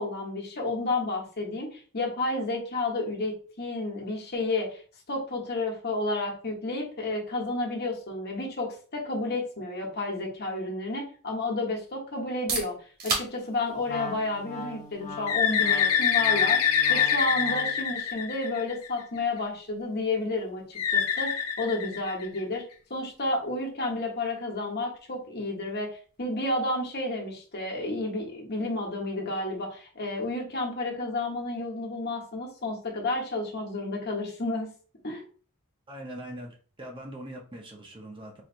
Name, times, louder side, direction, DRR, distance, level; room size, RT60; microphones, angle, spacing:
voice 1, 0.0-4.8 5.1-12.7 13.0-22.6 22.9-25.9 26.2-34.7 35.0-35.2, left 2 dB, 50° left, 0 dB, 1.2 m, -31 dB
sound 1, 12.2-27.8, right 3 dB, 45° right, 1.5 m, -42 dB
Wind instrument woodwind instrument, 13.9-17.9, equal, 30° left, 0.6 m, -41 dB
Bird, 15.3-19.0 20.8-22.5, left 8 dB, 90° left, 0.7 m, -25 dB
voice 2, 35.9-38.4, right 1 dB, 25° right, 1 dB, 0.8 m, -42 dB
4.4 x 3.2 x 2.6 m, 0.40 s
head